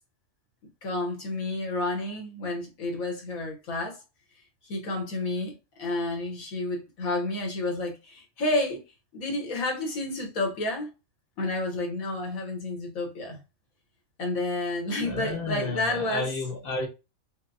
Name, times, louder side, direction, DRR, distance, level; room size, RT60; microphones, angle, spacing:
voice 1, 0.8-4.0 4.6-8.8 9.1-10.9 11.4-13.4 14.2-16.3, left 2 dB, 80° left, 1.6 m, -30 dB
voice 2, 15.0-16.9, left 3 dB, 35° left, 1.1 m, -31 dB
6.1 x 2.1 x 2.6 m
omnidirectional pair, 1.4 m